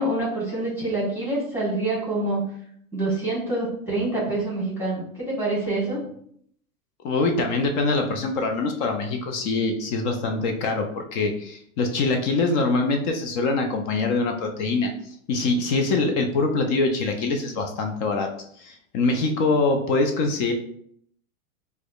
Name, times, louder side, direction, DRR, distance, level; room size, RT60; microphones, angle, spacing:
voice 1, 0.0-2.4 2.9-6.0, right 2 dB, 5° right, -7 dB, 1.1 m, -26 dB
voice 2, 7.0-14.9 15.3-18.3 18.6-20.5, left 3 dB, 35° left, 4 dB, 0.4 m, -24 dB
4.7 x 2.1 x 2.3 m, 0.66 s
hypercardioid pair, 125°, 43 cm